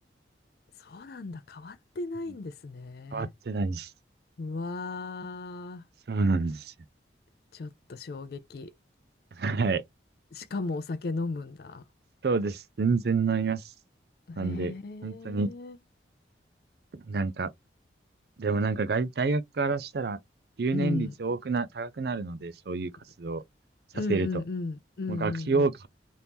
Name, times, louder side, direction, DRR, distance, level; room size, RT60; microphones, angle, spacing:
voice 1, 0.8-3.3 4.4-5.8 7.5-8.7 10.3-11.8 14.3-15.8 20.7-21.1 23.9-25.7, left 3 dB, 55° left, 0.4 m, -35 dB
voice 2, 3.1-3.9 6.1-6.7 9.4-9.8 12.2-13.6 14.4-14.7 15.0-15.5 17.1-17.5 18.4-20.2 20.6-22.9 23.2-23.4 24.1-24.3 25.1-25.9, right 4 dB, 55° right, 0.5 m, -28 dB
2.9 x 2.6 x 3.5 m
head